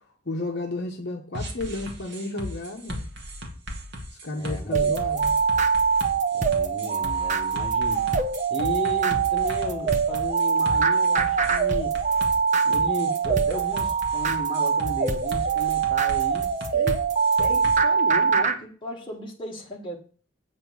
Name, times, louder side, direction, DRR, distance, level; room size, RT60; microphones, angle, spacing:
voice 1, 0.3-3.0 4.2-5.3, left 2 dB, 55° left, 1.1 m, -32 dB
sound 1, 1.3-17.8, equal, 55° right, 1.7 m, -37 dB
voice 2, 4.4-5.0 6.3-8.1 8.5-12.0 12.6-17.0 17.4-20.0, left 1 dB, 25° left, 1.9 m, -35 dB
sound 2, 4.7-18.6, right 6 dB, 35° right, 0.8 m, -23 dB
8.2 x 4.4 x 7.2 m
head